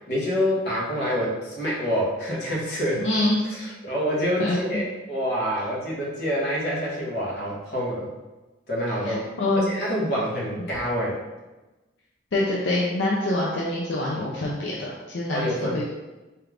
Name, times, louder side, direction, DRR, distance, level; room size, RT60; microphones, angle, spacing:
voice 1, 0.1-3.0 3.5-8.1 8.7-9.3 9.6-11.2 15.3-15.9, equal, 60° left, -6 dB, 1.4 m, -27 dB
voice 2, 3.0-3.7 4.4-4.6 9.0-9.7 12.3-15.9, left 2 dB, 85° left, -4 dB, 0.6 m, -25 dB
4.4 x 2.5 x 3.3 m, 1.1 s
head